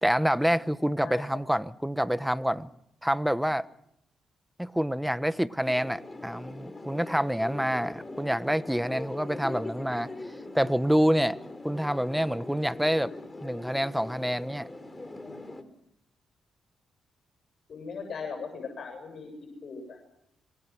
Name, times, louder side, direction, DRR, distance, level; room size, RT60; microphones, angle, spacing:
voice 1, 0.0-2.7 3.0-3.7 4.6-10.1 10.5-11.4 11.6-13.1 13.4-14.7, equal, 5° right, 1.3 m, -27 dB
sound 1, 5.6-15.6, left 2 dB, 20° left, 3.9 m, -41 dB
voice 2, 17.7-19.3 19.6-20.0, left 5 dB, 60° left, 7.8 m, -38 dB
26.5 x 23.0 x 6.3 m
supercardioid pair, 60°, 0 cm